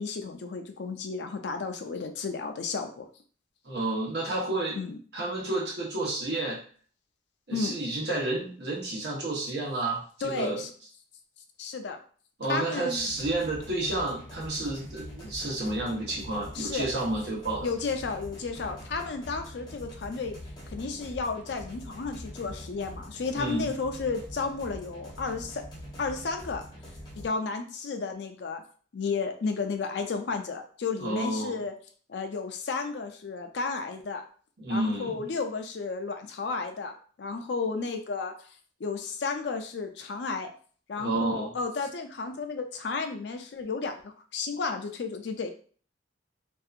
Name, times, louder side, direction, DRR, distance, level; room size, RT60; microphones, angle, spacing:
voice 1, 0.0-3.1 4.8-5.0 7.5-7.8 10.2-10.7 11.6-12.0 12.5-13.1 16.5-16.9 17.6-20.4 20.7-25.7 26.0-26.6 27.2-28.6 28.9-31.7 32.1-34.2 34.7-36.9 37.2-38.5 38.8-40.5 40.9-45.5, left 4 dB, 65° left, 6 dB, 0.4 m, -33 dB
voice 2, 3.6-4.8 5.1-6.6 7.5-10.7 12.4-17.7 23.3-23.7 31.0-31.6 34.6-35.2 41.0-41.5, right 2 dB, 60° right, -4 dB, 1.0 m, -30 dB
sound 1, 13.0-27.3, equal, 20° left, 0.7 m, -44 dB
2.7 x 2.3 x 2.4 m, 0.44 s
head